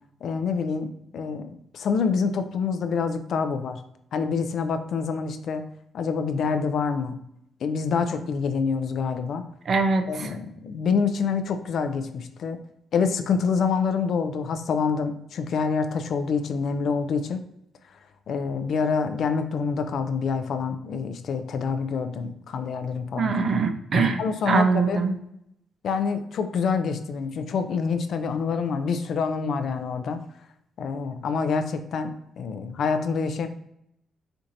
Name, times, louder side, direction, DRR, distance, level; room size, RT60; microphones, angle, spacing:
voice 1, 0.2-3.8 4.1-5.6 5.9-7.2 7.6-9.5 10.1-12.6 12.9-17.4 18.3-23.3 23.9-25.0 25.8-30.2 30.8-33.5, left 5 dB, 65° left, 8 dB, 0.4 m, -26 dB
voice 2, 9.7-10.3 23.2-25.1, right 4 dB, 50° right, 7 dB, 0.4 m, -23 dB
4.4 x 2.6 x 2.6 m, 0.77 s
cardioid pair, 90°, 0 cm